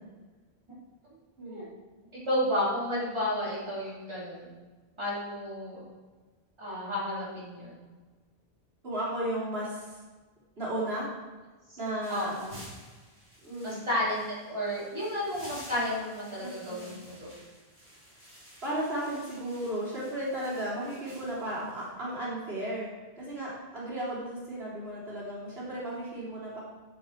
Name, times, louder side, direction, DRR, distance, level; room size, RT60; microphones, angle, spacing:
voice 1, 2.2-4.5 5.0-5.9 6.6-7.8 11.7-11.8 12.1-12.5 13.6-17.3, left 1 dB, 25° right, -8 dB, 3.8 m, -32 dB
voice 2, 8.8-10.0 10.6-11.1 11.8-12.4 13.4-13.8 16.7-17.0 18.6-22.9 23.2-26.6, right 1 dB, 70° right, -8 dB, 3.9 m, -34 dB
sound 1, 12.0-21.9, equal, 50° right, 4.6 m, -52 dB
14.0 x 7.7 x 4.5 m, 1.3 s
omnidirectional pair, 1.0 m